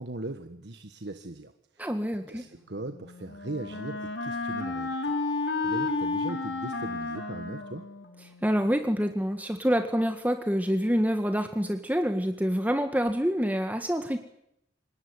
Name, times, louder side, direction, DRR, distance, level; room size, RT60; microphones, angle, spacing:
voice 1, 0.0-1.9 2.3-7.8, right 2 dB, 65° right, 7 dB, 1.4 m, -39 dB
voice 2, 1.8-2.4 8.4-14.2, equal, 10° right, 6 dB, 1.6 m, -27 dB
Wind instrument woodwind instrument, 2.8-8.6, left 3 dB, 75° left, 3.8 m, -32 dB
26.0 x 20.0 x 9.7 m, 0.79 s
head